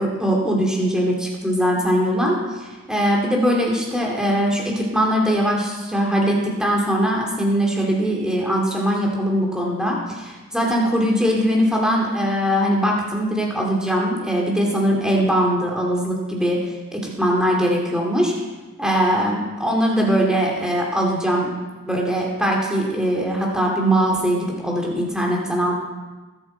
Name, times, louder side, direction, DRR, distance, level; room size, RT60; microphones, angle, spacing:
voice 1, 0.0-16.6 16.9-18.3 18.8-21.5 21.9-25.8, equal, 5° right, -2 dB, 2.3 m, -21 dB
20.0 x 8.0 x 4.4 m, 1.2 s
head